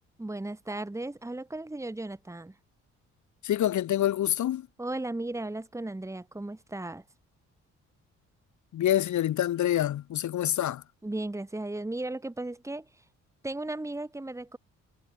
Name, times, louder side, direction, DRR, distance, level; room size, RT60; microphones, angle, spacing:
voice 1, 0.2-2.5 4.8-7.0 11.0-12.9 13.4-14.6, right 2 dB, 10° right, 2.5 m, -35 dB
voice 2, 3.4-4.7 8.7-10.8, left 12 dB, 70° left, 3.1 m, -26 dB
cardioid pair, 90°, 30 cm